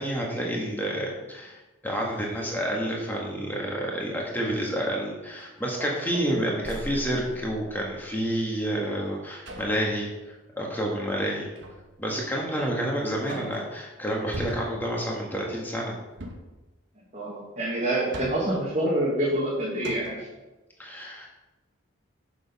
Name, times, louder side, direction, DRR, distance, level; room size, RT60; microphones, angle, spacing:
voice 1, 0.0-1.6 1.8-10.1 10.6-11.5 12.0-16.0 20.8-21.3, equal, 10° left, -2 dB, 1.6 m, -29 dB
sound 1, 1.4-1.5 2.0-3.2 3.7-4.2 4.7-4.9 5.3-6.2 6.6-8.1 9.5-9.9 11.6-12.0 12.5-12.6 13.0-13.9 14.3-15.0 16.1-16.6 17.8-18.6 19.4-19.5 19.8-20.3, right 1 dB, 60° right, 1.1 m, -41 dB
voice 2, 17.1-20.3, right 1 dB, 30° right, -6 dB, 1.5 m, -27 dB
6.8 x 6.3 x 5.5 m, 1.1 s
head